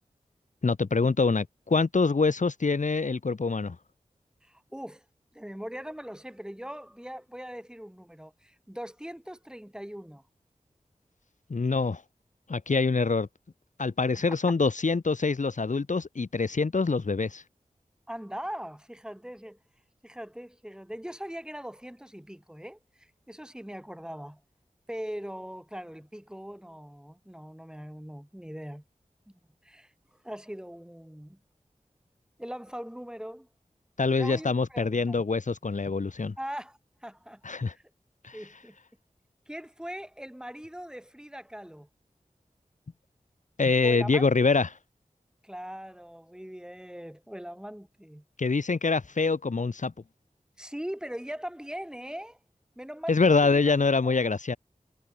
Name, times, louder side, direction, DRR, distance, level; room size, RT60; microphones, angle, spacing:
voice 1, 0.6-3.8 11.5-12.0 12.5-13.3 13.8-17.4 34.0-36.3 37.4-37.7 38.2-38.4 43.6-44.7 48.4-49.9 53.1-54.6, left 4 dB, 70° left, 2.5 m, -25 dB
voice 2, 4.4-5.0 5.3-10.2 18.1-19.6 20.0-24.4 24.9-28.8 29.3-29.9 30.2-31.4 32.4-33.5 34.2-35.2 36.4-37.8 38.3-38.8 39.5-41.9 43.8-44.2 45.4-48.2 50.6-52.4 52.8-53.7 54.0-54.2, equal, 5° right, 5.0 m, -41 dB
wide cardioid pair, 80°, 13 cm